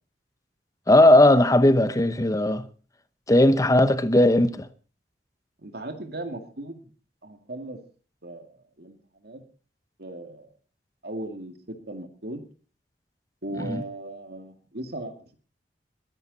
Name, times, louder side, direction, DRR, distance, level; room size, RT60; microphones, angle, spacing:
voice 1, 0.9-2.7 3.3-4.7 13.6-13.8, left 1 dB, 20° left, 0.9 m, -18 dB
voice 2, 5.6-6.9 7.2-7.8 8.2-9.0 9.2-9.4 10.0-10.5 11.0-12.4 13.4-15.1, right 2 dB, 60° right, 2.2 m, -37 dB
21.5 x 10.5 x 4.1 m
head